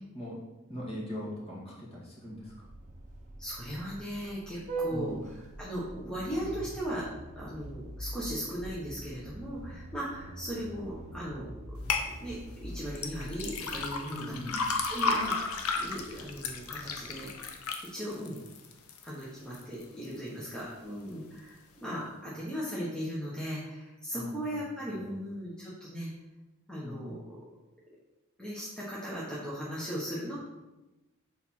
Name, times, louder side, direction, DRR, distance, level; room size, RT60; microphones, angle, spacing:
voice 1, 0.7-2.7 4.9-5.2 14.1-14.6 24.1-24.6 24.9-25.1 26.8-27.1, left 1 dB, 25° left, -5 dB, 2.0 m, -41 dB
Vehicle horn car horn honking, 2.3-17.7, right 2 dB, 35° right, 0.9 m, -44 dB
voice 2, 3.4-7.1 7.3-11.8 12.2-14.6 14.9-15.3 15.7-17.3 17.9-18.4 19.0-26.1 26.7-27.4 28.4-30.4, equal, 5° left, -8 dB, 1.1 m, -38 dB
sound 1, 11.9-12.1 13.0-19.1 19.5-20.1 20.5-20.6, left 4 dB, 70° left, 0.8 m, -33 dB
6.9 x 4.1 x 4.3 m, 1.0 s
head